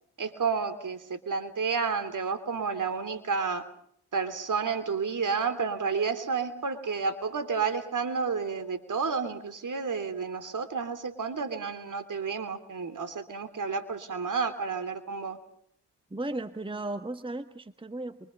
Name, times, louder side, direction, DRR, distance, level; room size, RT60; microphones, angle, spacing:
voice 1, 0.2-3.6 4.1-15.4, right 5 dB, 50° right, 11 dB, 3.2 m, -31 dB
voice 2, 16.1-18.3, right 2 dB, 10° right, 10 dB, 1.3 m, -35 dB
27.0 x 23.5 x 5.5 m, 0.68 s
supercardioid pair, 45°, 41 cm